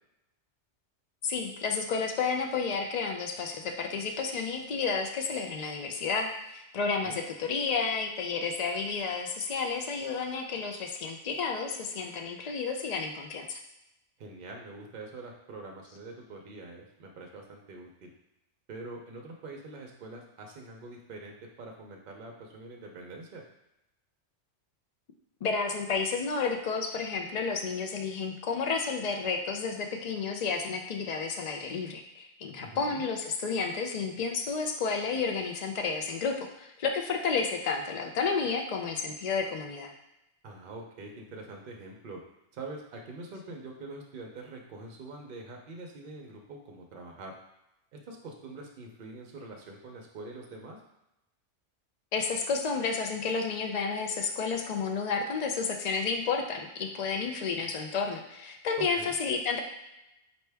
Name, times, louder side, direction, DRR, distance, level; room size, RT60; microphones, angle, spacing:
voice 1, 1.2-13.6 25.4-39.9 52.1-59.6, left 5 dB, 65° left, 3 dB, 0.4 m, -31 dB
voice 2, 14.2-18.1 18.7-23.4 32.6-33.0 40.4-42.2 42.5-47.4 48.1-50.8 58.8-59.1, right 2 dB, 55° right, 1 dB, 0.7 m, -44 dB
4.4 x 2.7 x 3.3 m, 0.88 s
omnidirectional pair, 1.2 m